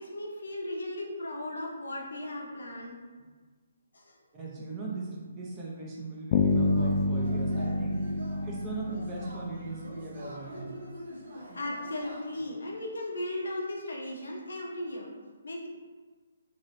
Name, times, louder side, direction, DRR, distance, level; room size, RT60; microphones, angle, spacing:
voice 1, 0.0-3.0 3.9-4.2 11.5-15.1 15.4-15.7, left 1 dB, 80° left, -1 dB, 0.7 m, -36 dB
voice 2, 4.3-8.1 8.4-10.8, right 3 dB, 20° right, -4 dB, 0.6 m, -39 dB
Bass guitar, 6.3-10.1, left 2 dB, 35° left, 0.3 m, -28 dB
Yell / Cheering, 6.5-12.6, equal, 70° right, 0.8 m, -45 dB
3.1 x 2.8 x 2.6 m, 1.4 s
hypercardioid pair, 150°, 0 cm